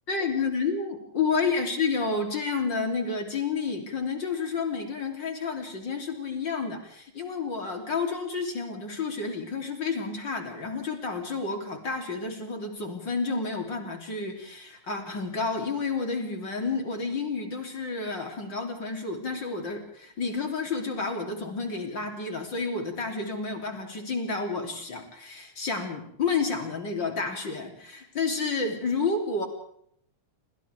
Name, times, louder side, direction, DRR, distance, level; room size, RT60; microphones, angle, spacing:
voice 1, 0.1-29.5, left 4 dB, 35° left, 2 dB, 3.5 m, -30 dB
28.5 x 26.5 x 3.5 m, 0.67 s
omnidirectional pair, 3.8 m